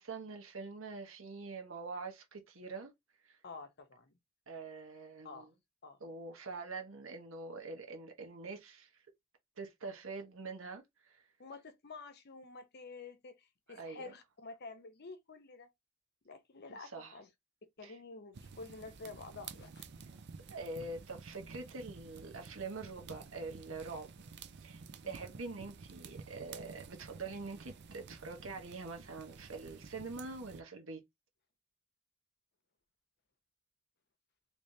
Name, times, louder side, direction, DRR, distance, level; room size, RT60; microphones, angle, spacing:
voice 1, 0.0-2.9 3.2-3.4 4.5-5.5 6.0-9.0 9.6-11.2 13.7-14.1 16.7-17.2 17.8-18.0 20.5-24.1 24.6-31.0, right 3 dB, 75° right, 1.1 m, -45 dB
voice 2, 3.4-4.1 5.2-5.5 5.8-6.0 11.4-15.7 16.2-17.3 17.8-19.8 25.0-25.2, left 3 dB, 55° left, 0.8 m, -49 dB
sound 1, 18.3-30.6, right 5 dB, 55° right, 0.5 m, -52 dB
3.3 x 3.3 x 2.7 m
head